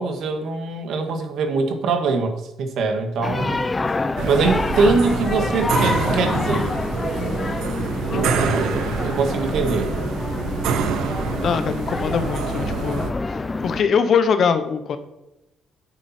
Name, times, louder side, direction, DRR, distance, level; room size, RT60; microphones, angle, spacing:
voice 1, 0.0-3.7 4.2-6.7 8.1-9.9, right 4 dB, 60° right, 6 dB, 1.6 m, -23 dB
sound 1, 3.2-13.8, left 3 dB, 15° left, 0.4 m, -26 dB
sound 2, 4.2-13.1, right 6 dB, 85° right, 1.0 m, -27 dB
voice 2, 11.4-13.1 13.6-15.0, left 6 dB, 45° left, 10 dB, 0.9 m, -22 dB
9.9 x 8.6 x 4.3 m, 0.92 s
cardioid pair, 170°, 0 cm